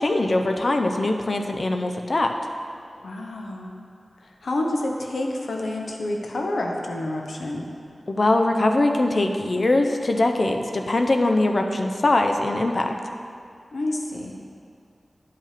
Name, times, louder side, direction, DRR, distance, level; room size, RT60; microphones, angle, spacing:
voice 1, 0.0-2.3 8.1-12.9, left 2 dB, 55° left, 4 dB, 0.7 m, -22 dB
voice 2, 3.0-3.7 4.2-7.7 13.7-14.4, left 1 dB, 80° left, 1 dB, 1.0 m, -28 dB
10.5 x 5.7 x 5.0 m, 2.4 s
cardioid pair, 55°, 0 cm